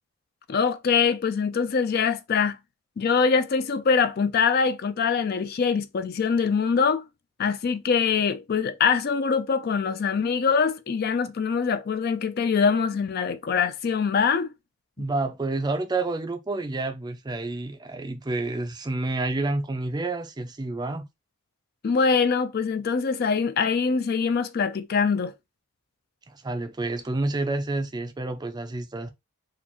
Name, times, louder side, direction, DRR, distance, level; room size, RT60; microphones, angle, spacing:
voice 1, 0.5-2.6 3.0-7.0 7.4-14.5 21.8-25.3, left 5 dB, 45° left, 0.4 m, -23 dB
voice 2, 15.0-21.1 26.3-29.1, right 2 dB, 20° right, 0.4 m, -29 dB
4.1 x 2.4 x 2.9 m
head